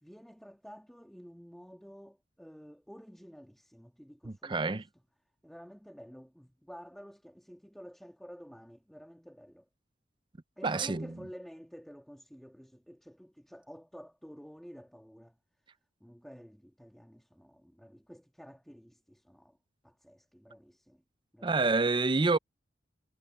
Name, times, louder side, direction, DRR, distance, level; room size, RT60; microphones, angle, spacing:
voice 1, 0.0-4.7 5.4-9.7 10.6-15.4 16.0-19.6 19.8-21.0 21.3-21.6, equal, ahead, 1.7 m, -51 dB
voice 2, 4.2-4.9 10.6-11.1 21.4-22.4, right 3 dB, 25° right, 0.5 m, -28 dB
head